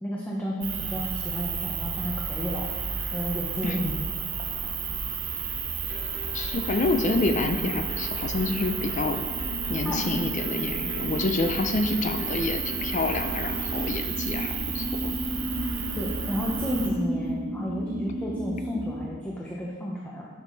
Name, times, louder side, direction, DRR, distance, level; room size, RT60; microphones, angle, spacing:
voice 1, 0.0-2.7 3.1-3.9 9.8-10.0 15.9-20.3, equal, 10° left, -5 dB, 0.9 m, -32 dB
sound 1, 0.6-16.9, right 5 dB, 75° right, 1.3 m, -32 dB
sound 2, 5.9-13.9, left 1 dB, 90° left, 1.2 m, -44 dB
voice 2, 6.3-9.2 9.7-15.2, left 2 dB, 40° left, 7 dB, 0.5 m, -28 dB
sound 3, 9.3-19.1, equal, 50° right, 1.4 m, -34 dB
9.6 x 6.5 x 4.0 m, 1.5 s
head